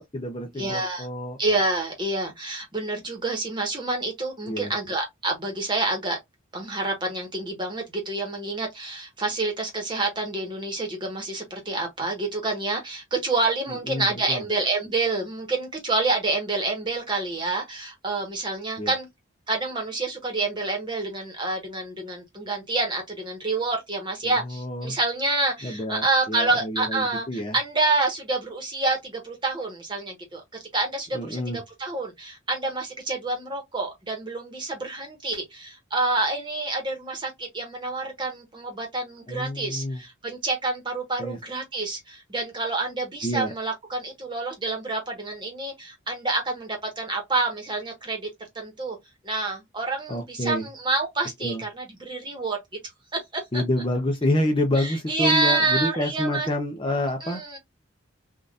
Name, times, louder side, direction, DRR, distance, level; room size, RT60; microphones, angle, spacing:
voice 1, 0.0-1.4 4.4-4.7 13.7-14.4 18.8-18.9 24.2-25.0 25.6-27.6 31.1-31.6 39.3-40.0 41.2-41.4 43.2-43.5 50.1-50.7 51.4-51.6 53.5-57.4, left 1 dB, 25° left, 0.6 m, -28 dB
voice 2, 0.6-1.1 1.4-6.2 6.5-19.1 19.5-30.4 30.7-31.4 31.8-48.3 48.5-49.0 49.2-52.6 53.3-53.6 54.8-56.5 57.2-57.6, right 2 dB, 20° right, 1.2 m, -28 dB
3.7 x 2.5 x 2.4 m
head